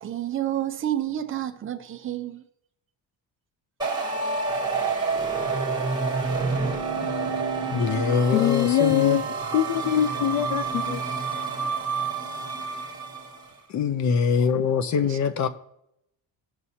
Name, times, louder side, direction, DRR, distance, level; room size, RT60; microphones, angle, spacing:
voice 1, 0.0-2.4 15.1-15.2, right 12 dB, 30° right, 0.6 m, -29 dB
sound 1, 3.8-13.4, right 4 dB, 10° right, 1.5 m, -28 dB
voice 2, 7.7-9.2 13.7-15.5, left 6 dB, 40° left, 0.6 m, -23 dB
voice 3, 8.3-9.3 9.5-11.0, left 10 dB, 85° left, 0.6 m, -23 dB
17.5 x 6.2 x 2.8 m
cardioid pair, 180°, 43 cm